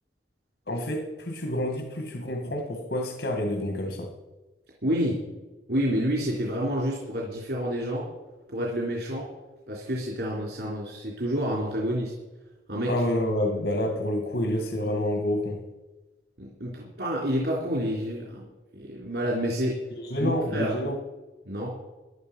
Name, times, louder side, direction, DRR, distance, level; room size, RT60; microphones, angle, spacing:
voice 1, 0.7-4.1 12.9-15.6 20.0-21.0, left 1 dB, 75° left, 3 dB, 2.0 m, -28 dB
voice 2, 4.8-5.2 5.7-8.0 8.5-9.3 9.7-12.1 12.7-12.9 16.4-18.5 18.7-19.8 20.2-20.8 21.5-21.7, equal, 70° right, -3 dB, 3.6 m, -28 dB
17.5 x 11.5 x 5.5 m, 1.2 s
head